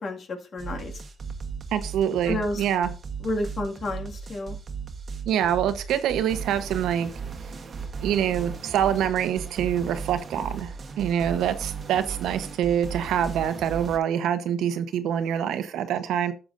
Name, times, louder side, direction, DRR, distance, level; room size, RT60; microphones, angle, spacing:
voice 1, 0.0-0.9 2.3-2.6 3.2-4.5, left 2 dB, 50° left, 3 dB, 2.0 m, -30 dB
sound 1, 0.6-14.0, right 5 dB, 45° right, 1.2 m, -36 dB
voice 2, 1.7-2.9 5.3-7.1 8.0-16.3, right 9 dB, 80° right, 10 dB, 1.0 m, -25 dB
12.5 x 7.0 x 2.6 m, 0.35 s
cardioid pair, 90°, 0 cm